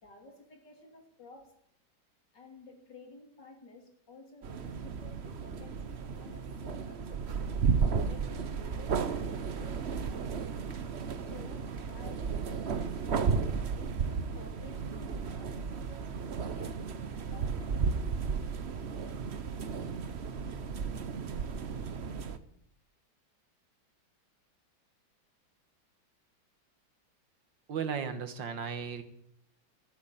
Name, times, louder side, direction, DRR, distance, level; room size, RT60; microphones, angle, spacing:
voice 1, 0.0-1.5 2.3-10.4 11.2-16.1 16.5-16.9 17.3-18.0, left 2 dB, 65° left, 3 dB, 3.4 m, -53 dB
sound 1, 4.4-22.4, right 5 dB, 45° right, 0.9 m, -34 dB
voice 2, 27.7-29.0, right 6 dB, 75° right, 9 dB, 2.2 m, -35 dB
13.0 x 10.5 x 8.9 m, 0.71 s
omnidirectional pair, 2.0 m